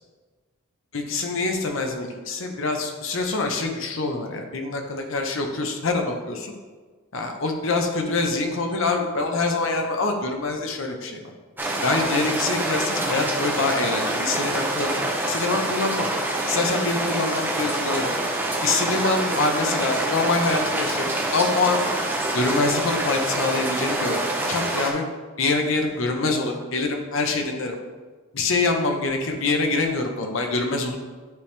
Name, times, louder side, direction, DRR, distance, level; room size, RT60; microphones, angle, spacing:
voice 1, 0.9-6.5 7.1-11.2 11.8-16.1 16.4-18.1 18.6-21.9 22.3-25.0 25.4-27.8 28.3-31.0, left 3 dB, 65° left, 3 dB, 0.8 m, -25 dB
sound 1, 11.6-24.9, right 1 dB, 10° right, 0.6 m, -26 dB
9.6 x 3.4 x 3.3 m, 1.4 s
head